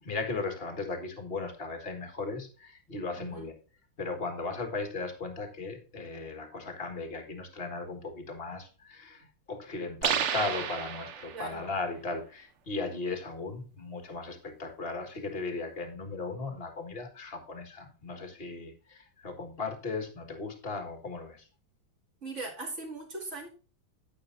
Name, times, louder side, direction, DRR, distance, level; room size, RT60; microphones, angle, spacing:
voice 1, 0.0-3.5 4.0-21.4, left 3 dB, 30° left, 5 dB, 1.7 m, -37 dB
voice 2, 3.2-3.5 11.3-11.6 22.2-23.5, right 3 dB, 40° right, -2 dB, 2.7 m, -39 dB
sound 1, 10.0-11.6, right 8 dB, 60° right, 0.8 m, -31 dB
9.7 x 8.8 x 2.6 m, 0.36 s
omnidirectional pair, 2.0 m